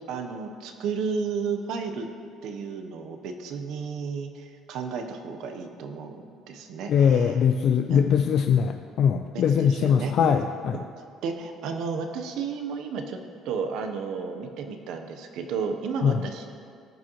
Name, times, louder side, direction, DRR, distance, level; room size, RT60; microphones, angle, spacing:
voice 1, 0.1-2.1 2.4-7.4 7.9-8.0 9.3-10.3 10.7-10.9 11.2-13.2 13.4-16.5, right 5 dB, 70° right, 5 dB, 0.8 m, -33 dB
voice 2, 6.9-10.8 16.0-16.2, left 7 dB, 55° left, 6 dB, 0.3 m, -22 dB
15.5 x 6.2 x 3.1 m, 2.3 s
cardioid pair, 135°, 0 cm